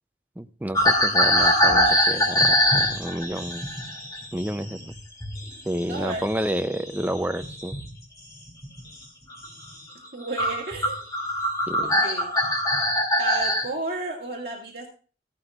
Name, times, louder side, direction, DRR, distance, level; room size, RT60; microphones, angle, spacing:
voice 1, 0.4-3.7 4.3-4.9 5.7-7.8 11.7-12.0, right 1 dB, 10° right, 10 dB, 0.4 m, -30 dB
sound 1, 0.7-5.5 5.8-7.9 8.5-8.8 9.3-9.5 10.0-10.1 10.4-13.6, left 1 dB, 20° left, 2.4 m, -23 dB
voice 2, 5.9-6.2 10.1-11.0 11.8-12.4 13.2-14.9, right 3 dB, 60° right, -3 dB, 2.1 m, -32 dB
15.0 x 11.5 x 2.4 m, 0.38 s
head